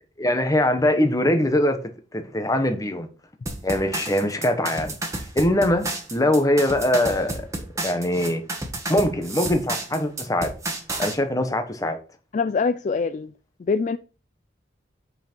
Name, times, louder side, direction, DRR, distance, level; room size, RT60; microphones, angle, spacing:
voice 1, 0.2-1.8 2.1-3.1 3.6-4.9 5.3-7.4 7.8-8.4 8.9-10.5 11.0-12.0, left 1 dB, 20° left, 1.1 m, -22 dB
sound 1, 3.5-11.1, right 2 dB, 15° right, 1.4 m, -31 dB
voice 2, 12.3-13.3 13.7-14.0, left 4 dB, 40° left, 0.3 m, -23 dB
8.1 x 5.8 x 4.5 m
head